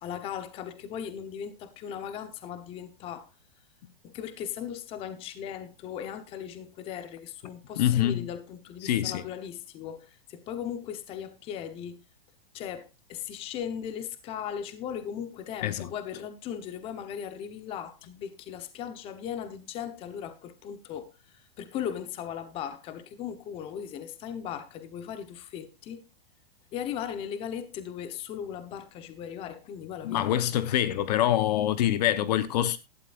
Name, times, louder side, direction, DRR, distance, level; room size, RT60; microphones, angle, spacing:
voice 1, 0.0-3.3 4.0-12.0 12.5-26.0 26.7-30.7, left 9 dB, 20° left, 0.9 m, -38 dB
voice 2, 7.8-8.3 8.8-9.2 15.6-15.9 30.0-32.8, left 12 dB, 45° left, 1.0 m, -25 dB
16.5 x 11.5 x 2.5 m
hypercardioid pair, 160°, 29 cm